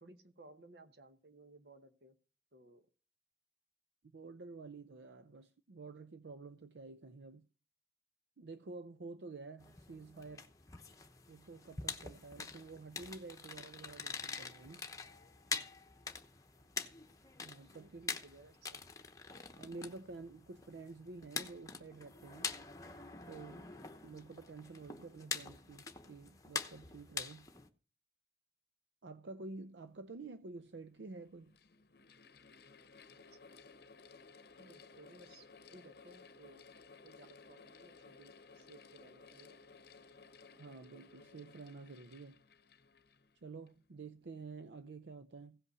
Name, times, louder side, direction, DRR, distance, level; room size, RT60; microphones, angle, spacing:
voice 1, 0.0-2.2 2.5-2.9 16.5-16.7 17.7-18.8 33.1-33.4 34.6-36.6 37.0-39.6, right 2 dB, 65° right, 1.2 m, -59 dB
voice 2, 4.1-7.5 8.4-10.5 11.3-14.9 17.4-18.0 19.6-22.5 23.3-27.5 29.0-31.6 40.6-42.4 43.4-45.6, right 3 dB, 85° right, 0.6 m, -50 dB
sound 1, 9.6-27.7, left 5 dB, 20° left, 0.9 m, -45 dB
Mechanical fan, 30.2-30.3 31.2-43.8, left 4 dB, 60° left, 0.8 m, -58 dB
16.0 x 5.5 x 6.8 m
head